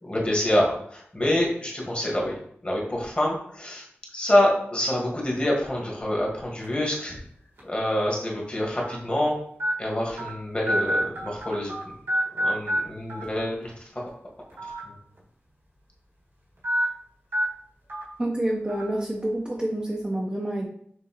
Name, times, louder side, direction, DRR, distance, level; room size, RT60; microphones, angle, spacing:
voice 1, 0.0-2.4 2.6-3.8 4.1-7.2 7.6-9.4 9.8-11.7 12.3-14.1 14.8-14.9, left 1 dB, 25° left, -2 dB, 1.4 m, -26 dB
sound 1, 6.6-6.9 7.6-7.7 8.8-8.9 9.6-9.7 10.2-10.3 10.7-11.8 12.1-12.8 13.1-13.2 14.5-14.8 15.2-15.3 16.6-16.8 17.3-17.4 17.9-18.0 18.7-18.8, equal, 75° right, 1.6 m, -26 dB
voice 2, 18.2-20.6, right 1 dB, 20° right, -2 dB, 0.6 m, -28 dB
6.3 x 2.7 x 2.9 m, 0.65 s
wide cardioid pair, 75°, 4 cm